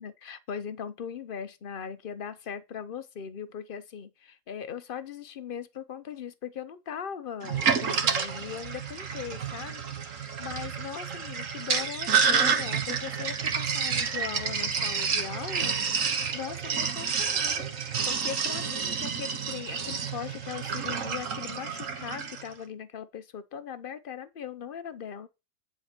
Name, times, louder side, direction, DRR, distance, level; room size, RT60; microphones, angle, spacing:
voice 1, 0.0-25.3, left 8 dB, 50° left, 0.7 m, -39 dB
Sink (filling or washing), 7.4-22.5, right 6 dB, 55° right, 1.4 m, -29 dB
10.5 x 4.4 x 6.0 m
omnidirectional pair, 1.7 m